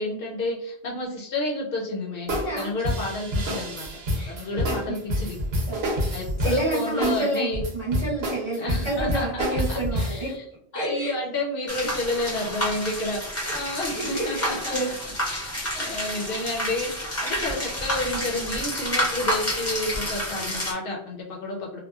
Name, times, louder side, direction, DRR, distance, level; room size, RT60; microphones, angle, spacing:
voice 1, 0.0-3.9 4.3-5.4 6.1-7.6 8.6-9.3 9.7-10.4 10.7-14.8 15.3-21.8, left 2 dB, 60° left, -1 dB, 0.7 m, -30 dB
voice 2, 2.3-2.7 4.1-5.0 5.7-5.8 6.4-10.3 10.7-11.1 11.7-11.8 12.5-12.8 13.4-13.7 13.9-14.9, right 2 dB, 35° right, -6 dB, 0.6 m, -29 dB
sound 1, 2.3-10.3, equal, 65° right, 0.9 m, -28 dB
sound 2, 11.7-20.7, equal, 20° left, 0.5 m, -29 dB
2.8 x 2.1 x 2.2 m, 0.72 s
omnidirectional pair, 1.2 m